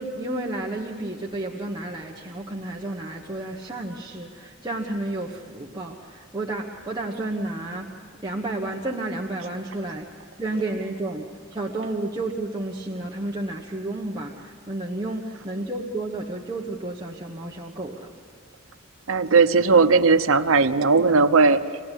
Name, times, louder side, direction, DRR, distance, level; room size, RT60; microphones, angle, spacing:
voice 1, 0.0-7.9 8.2-10.1 10.4-18.1, right 2 dB, 20° right, -2 dB, 1.2 m, -31 dB
voice 2, 19.1-21.6, right 4 dB, 75° right, 9 dB, 0.8 m, -17 dB
26.0 x 18.0 x 10.0 m, 2.3 s
head